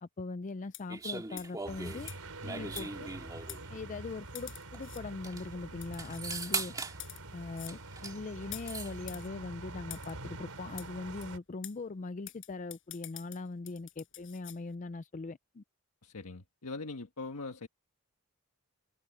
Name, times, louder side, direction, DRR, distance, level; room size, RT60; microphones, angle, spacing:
voice 1, 0.0-2.1 2.4-3.1 3.7-6.7 7.3-15.6, left 3 dB, 35° left, 0.4 m, -41 dB
sound 1, 0.7-1.0 1.4-1.6 2.1-2.2 2.8-3.1 3.5-3.6 4.3-5.0 5.8-6.2 6.9-7.2 7.5-7.8 8.5-9.3 9.9-10.1 10.8-10.9 11.2-11.3 11.6-11.8 12.3-14.6, left 16 dB, 60° left, 5.7 m, -47 dB
sound 2, 0.9-3.7 4.7-4.8 5.1-5.4 6.0-7.0 7.7-8.2 8.4-8.9, right 4 dB, 15° right, 2.2 m, -39 dB
sound 3, 1.6-11.4, right 2 dB, 75° right, 4.6 m, -46 dB
voice 2, 16.0-17.7, left 3 dB, 90° left, 1.5 m, -42 dB
head